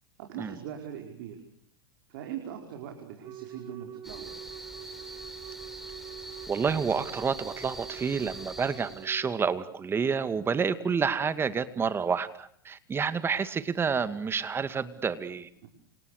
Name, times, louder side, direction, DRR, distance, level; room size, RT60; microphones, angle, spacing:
voice 1, 0.2-1.4 2.1-4.5 15.6-15.7, right 9 dB, 60° right, 3 dB, 5.2 m, -41 dB
Wind instrument woodwind instrument, 3.2-9.3, right 11 dB, 35° right, 1.8 m, -45 dB
sound 1, 4.0-9.1, right 1 dB, ahead, 5.0 m, -44 dB
voice 2, 6.5-15.5, right 6 dB, 20° right, 12 dB, 2.2 m, -29 dB
29.5 x 27.5 x 6.6 m, 0.62 s
hypercardioid pair, 100°, 12 cm